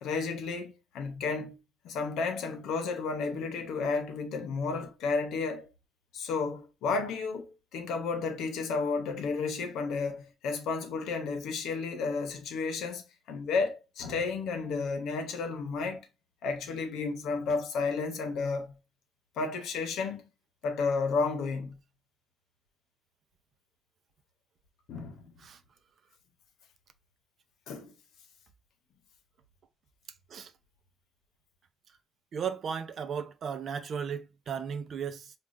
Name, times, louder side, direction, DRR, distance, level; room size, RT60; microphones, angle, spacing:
voice 1, 0.0-1.6 1.8-5.7 6.1-16.1 16.4-18.7 19.4-20.2 20.6-21.8 24.9-25.3 27.7-27.9, left 4 dB, 85° left, 0.8 m, -32 dB
voice 2, 32.3-35.3, right 7 dB, 60° right, 0.5 m, -35 dB
4.8 x 2.4 x 2.5 m
cardioid pair, 90°, 0 cm